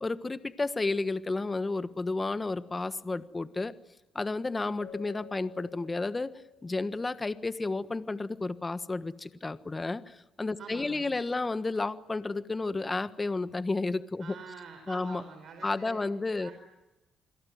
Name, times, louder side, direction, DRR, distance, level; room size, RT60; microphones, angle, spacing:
voice 1, 0.0-3.7 4.1-6.3 6.6-14.4 14.9-15.2 15.6-16.5, left 3 dB, 25° left, 13 dB, 1.3 m, -32 dB
Keyboard (musical), 4.8-7.2, left 7 dB, 70° left, 2.3 m, -51 dB
voice 2, 10.6-11.1 14.2-16.0 16.4-16.5, right 5 dB, 65° right, 6 dB, 4.9 m, -46 dB
28.5 x 22.0 x 9.5 m, 1.0 s
cardioid pair, 90°, 0 cm